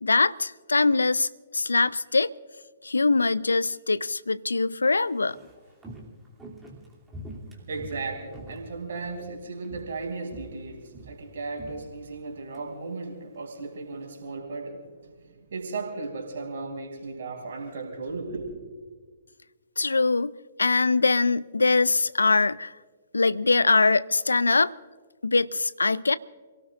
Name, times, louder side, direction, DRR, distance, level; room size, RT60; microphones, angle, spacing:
voice 1, 0.0-2.3 2.8-5.4 19.8-20.3 20.6-22.7 23.1-24.7 25.2-26.2, left 3 dB, 80° left, 0.5 m, -22 dB
Walk footsteps, 5.1-9.4 9.6-10.0 10.3-12.6 12.9-13.0, right 1 dB, 10° right, 2.9 m, -44 dB
voice 2, 7.5-14.8 15.2-18.6, right 3 dB, 60° right, 4.1 m, -36 dB
29.0 x 17.5 x 2.6 m
figure-of-eight pair, 120°, 0 cm